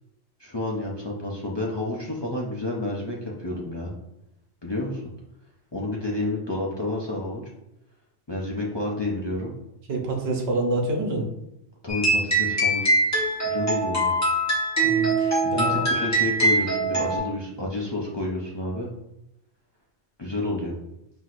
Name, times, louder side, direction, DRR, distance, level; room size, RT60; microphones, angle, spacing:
voice 1, 0.4-3.9 4.6-5.0 5.7-7.4 8.3-9.5 11.8-13.0 13.4-14.1 15.4-18.9 20.2-20.8, left 2 dB, 40° left, -4 dB, 0.4 m, -30 dB
voice 2, 9.9-11.3 14.8-15.9, right 2 dB, 60° right, 2 dB, 1.0 m, -27 dB
sound 1, 11.9-17.2, right 2 dB, 15° left, 1.0 m, -23 dB
5.8 x 2.7 x 2.5 m, 0.86 s
omnidirectional pair, 1.2 m